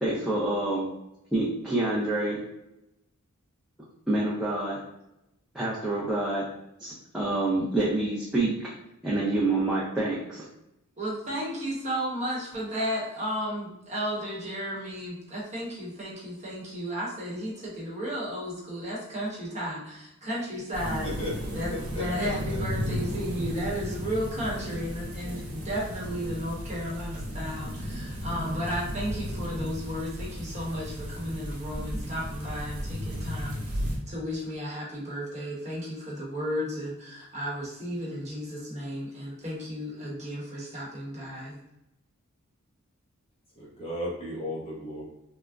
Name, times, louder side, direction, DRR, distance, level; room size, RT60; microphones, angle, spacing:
voice 1, 0.0-0.9 1.3-2.4 4.1-4.8 5.5-6.4 6.8-8.5 9.0-10.4, right 2 dB, 5° right, -8 dB, 0.4 m, -27 dB
voice 2, 11.0-21.1 21.5-41.6, equal, 30° right, -5 dB, 0.9 m, -34 dB
sound 1, 20.7-34.0, equal, 85° right, 0.8 m, -34 dB
voice 3, 21.0-22.6 43.6-45.0, left 1 dB, 25° left, -5 dB, 0.8 m, -36 dB
3.4 x 2.0 x 2.4 m, 0.87 s
head